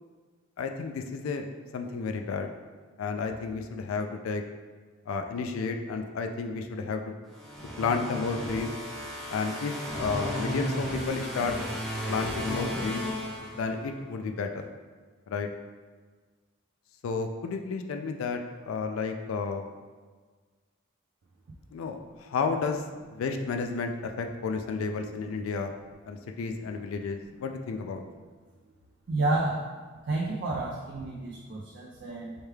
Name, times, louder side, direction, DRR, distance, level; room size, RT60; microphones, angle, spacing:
voice 1, 0.6-2.5 3.0-4.4 5.1-7.1 7.8-8.7 9.3-11.6 12.1-13.0 13.5-14.6 15.3-15.5 17.0-19.7 21.7-22.8 23.1-25.7 26.1-28.0, left 4 dB, 75° left, 5 dB, 0.3 m, -32 dB
sound 1, 7.3-14.0, equal, ahead, 0.5 m, -34 dB
voice 2, 29.1-29.7 30.1-32.4, right 2 dB, 55° right, -3 dB, 0.4 m, -30 dB
4.5 x 2.3 x 3.2 m, 1.4 s
head